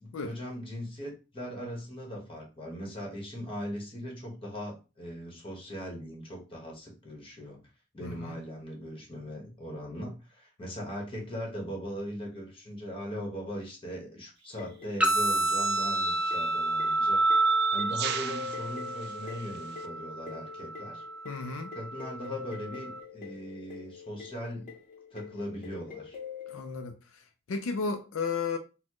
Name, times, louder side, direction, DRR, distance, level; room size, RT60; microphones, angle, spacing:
voice 1, 0.0-7.7 7.9-17.2 17.5-21.0 21.7-24.7 25.1-26.2, equal, 25° left, 1.1 m, -39 dB
voice 2, 8.0-8.4 21.2-21.7 26.5-27.2 27.5-28.6, left 4 dB, 80° left, 0.4 m, -34 dB
sound 1, 14.5-14.6 15.7-19.9, right 10 dB, 55° right, 0.3 m, -39 dB
sound 2, 14.6-26.9, left 8 dB, 45° left, 0.7 m, -45 dB
sound 3, 15.0-23.0, right 2 dB, 5° right, 0.6 m, -30 dB
4.1 x 2.1 x 2.9 m
head